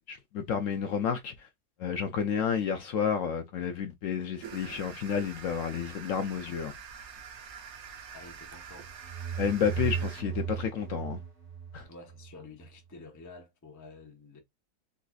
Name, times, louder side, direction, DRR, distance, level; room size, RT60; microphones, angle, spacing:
voice 1, 0.1-1.5 1.8-6.7 9.4-11.2 11.7-11.9, left 7 dB, 70° left, 0.8 m, -31 dB
sound 1, 4.4-10.2, right 7 dB, 70° right, 1.1 m, -46 dB
voice 2, 8.1-8.9 11.9-14.4, left 3 dB, 25° left, 0.4 m, -49 dB
sound 2, 8.7-12.4, right 7 dB, 30° right, 1.5 m, -36 dB
3.9 x 2.5 x 2.3 m
omnidirectional pair, 1.6 m